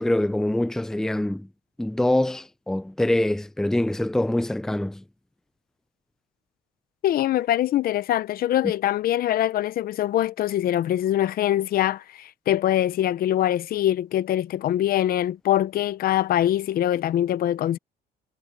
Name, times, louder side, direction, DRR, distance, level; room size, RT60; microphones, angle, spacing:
voice 1, 0.0-1.5 1.8-5.0, left 1 dB, 5° left, 0.6 m, -24 dB
voice 2, 7.0-17.8, left 12 dB, 60° left, 0.9 m, -23 dB
cardioid pair, 110°, 17 cm